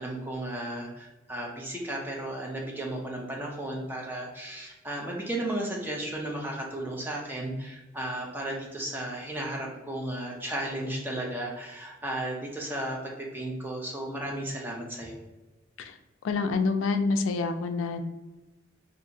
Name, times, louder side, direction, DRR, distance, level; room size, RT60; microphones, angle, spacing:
voice 1, 0.0-15.2, right 1 dB, 10° right, -1 dB, 0.4 m, -34 dB
voice 2, 16.2-18.0, left 4 dB, 80° left, 7 dB, 0.3 m, -27 dB
2.7 x 2.4 x 2.7 m, 1.1 s
head